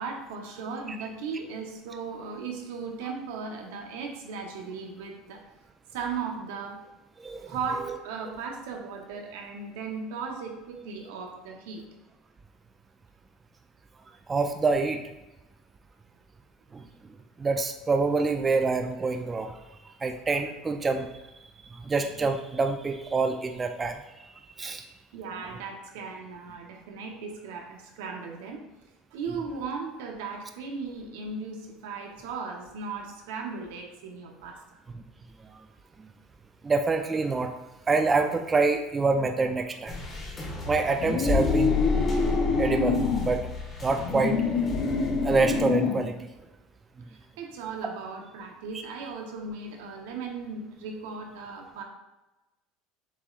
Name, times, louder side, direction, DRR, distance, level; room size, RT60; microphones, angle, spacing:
voice 1, 0.0-5.4 5.9-6.8 7.4-11.8 24.8-28.6 29.1-34.8 47.1-51.8, right 5 dB, 90° right, 2 dB, 0.8 m, -37 dB
voice 2, 7.2-7.6 14.3-15.0 16.7-16.8 17.4-19.5 20.0-21.1 21.6-24.9 36.6-37.5 37.9-39.9 40.6-41.7 42.6-43.5 43.8-44.4 45.2-46.3, right 3 dB, 20° right, 6 dB, 0.3 m, -26 dB
sound 1, 39.9-45.6, left 4 dB, 20° left, 1.1 m, -32 dB
sound 2, 41.0-43.3 43.9-46.1, left 4 dB, 40° left, 0.6 m, -26 dB
7.0 x 3.1 x 2.4 m, 1.0 s
supercardioid pair, 135°, 0 cm